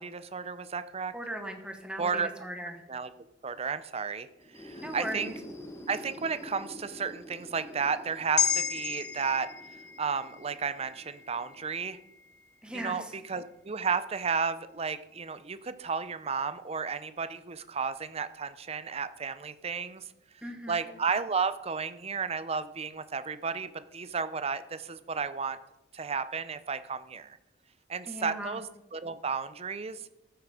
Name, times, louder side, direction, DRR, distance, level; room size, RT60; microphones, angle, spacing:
voice 1, 0.0-1.1 2.0-2.3 2.9-3.1 3.4-4.3 4.5-5.3 5.9-12.0 12.7-20.0 20.7-25.6 25.9-27.4 27.9-30.0, right 5 dB, 35° right, 13 dB, 0.6 m, -33 dB
voice 2, 1.1-2.7 4.8-5.3 12.6-13.0 20.4-20.9 28.1-28.6, equal, 5° right, 4 dB, 1.2 m, -38 dB
sound 1, 4.4-12.1, left 1 dB, 15° left, 1.2 m, -47 dB
sound 2, 8.4-12.9 13.3-13.4, left 9 dB, 60° left, 1.4 m, -34 dB
14.0 x 8.0 x 4.9 m, 0.93 s
head